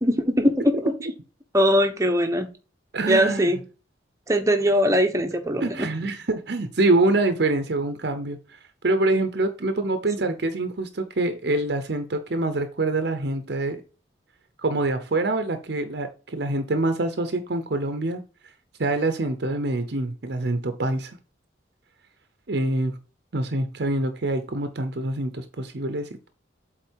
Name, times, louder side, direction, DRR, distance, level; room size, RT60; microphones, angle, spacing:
voice 1, 0.0-0.9 1.5-2.5 3.1-3.6 4.3-5.9, equal, 15° right, 1.0 m, -21 dB
voice 2, 2.9-3.5 5.6-13.8 14.6-18.2 18.8-21.1 22.5-22.9 23.3-26.3, right 2 dB, 60° right, 0.7 m, -25 dB
8.0 x 3.9 x 4.5 m
head